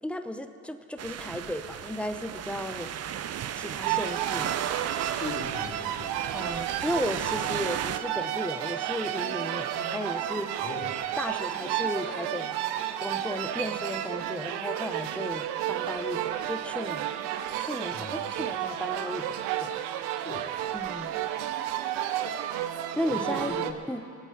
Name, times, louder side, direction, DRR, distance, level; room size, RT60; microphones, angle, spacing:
voice 1, 0.0-2.9 3.5-4.5 6.3-10.6 11.2-12.6 13.0-17.1 17.6-19.7 20.7-21.1 22.9-23.5 23.9-24.1, left 1 dB, 5° left, 8 dB, 1.0 m, -35 dB
sound 1, 1.0-8.0, right 9 dB, 40° right, 0.6 m, -35 dB
sound 2, 3.8-23.7, right 11 dB, 75° right, 0.8 m, -32 dB
voice 2, 5.1-6.1 10.6-10.9 17.9-18.2 20.2-20.5 23.1-23.8, left 3 dB, 25° left, -4 dB, 3.8 m, -38 dB
22.5 x 8.4 x 5.9 m, 2.7 s
hypercardioid pair, 65°, 41 cm